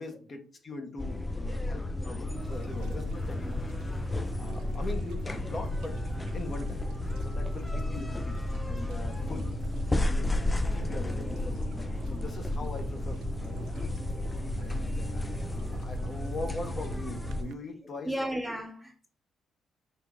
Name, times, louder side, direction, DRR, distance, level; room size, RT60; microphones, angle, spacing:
voice 1, 0.0-3.8 4.3-6.0 6.3-6.9 7.2-8.4 8.7-9.5 10.0-10.3 10.7-13.9 14.6-18.3, left 2 dB, 40° left, 1.0 m, -42 dB
sound 1, 1.0-17.4, left 2 dB, 15° left, 0.3 m, -32 dB
sound 2, 2.3-17.5, right 7 dB, 85° right, 0.3 m, -43 dB
voice 2, 18.0-19.1, right 1 dB, 5° right, 0.8 m, -34 dB
5.1 x 2.5 x 3.6 m
cardioid pair, 90°, 0 cm